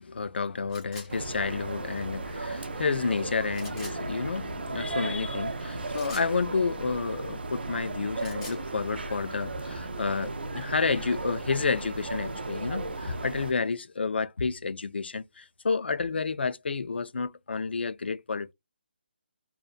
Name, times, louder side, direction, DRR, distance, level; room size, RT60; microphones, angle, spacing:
voice 1, 0.0-18.5, left 4 dB, 75° left, 0.3 m, -30 dB
sound 1, 0.7-1.1 3.5-4.0 5.9-6.3 8.0-8.6, left 2 dB, 5° left, 0.4 m, -44 dB
sound 2, 1.1-13.5, right 2 dB, 75° right, 0.5 m, -35 dB
2.7 x 2.1 x 2.4 m
hypercardioid pair, 180°, 6 cm